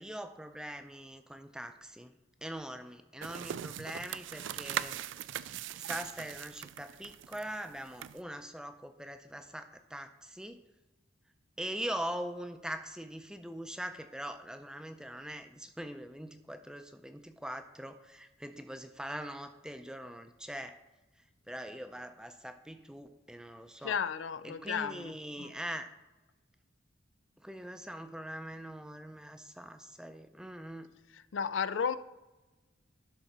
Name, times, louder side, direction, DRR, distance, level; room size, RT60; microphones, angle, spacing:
voice 1, 0.0-2.1 2.4-4.9 5.8-10.6 11.6-20.8 21.5-24.0 24.4-25.9 27.4-30.9, equal, 5° right, 8 dB, 0.4 m, -42 dB
sound 1, 3.2-8.2, right 10 dB, 70° right, 0.3 m, -40 dB
voice 2, 23.8-25.1 25.4-25.5 31.3-32.0, left 7 dB, 75° left, 14 dB, 0.4 m, -33 dB
11.5 x 3.9 x 6.0 m, 1.1 s
head